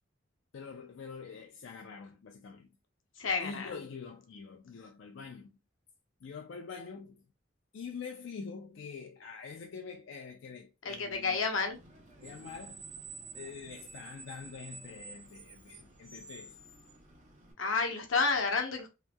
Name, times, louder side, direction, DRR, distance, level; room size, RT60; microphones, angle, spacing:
voice 1, 0.5-2.7 3.4-5.5 6.2-7.2 7.7-11.4 12.2-12.9 13.3-16.6, left 5 dB, 65° left, 0.4 m, -45 dB
voice 2, 3.2-3.7 10.8-11.8 17.6-18.9, left 4 dB, 85° left, 0.8 m, -30 dB
Screech, 11.7-17.5, right 4 dB, 40° right, 1.1 m, -50 dB
2.8 x 2.6 x 2.2 m
head